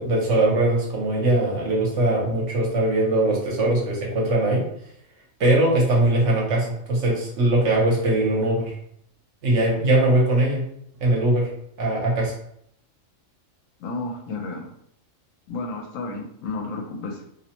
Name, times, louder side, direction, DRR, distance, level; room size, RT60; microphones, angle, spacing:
voice 1, 0.0-4.6 5.4-8.7 9.4-10.6 11.0-11.5 11.8-12.3, right 2 dB, 70° right, -3 dB, 1.1 m, -21 dB
voice 2, 13.8-14.7 15.5-17.2, left 3 dB, 80° left, 2 dB, 1.0 m, -32 dB
2.6 x 2.0 x 2.8 m, 0.71 s
omnidirectional pair, 1.3 m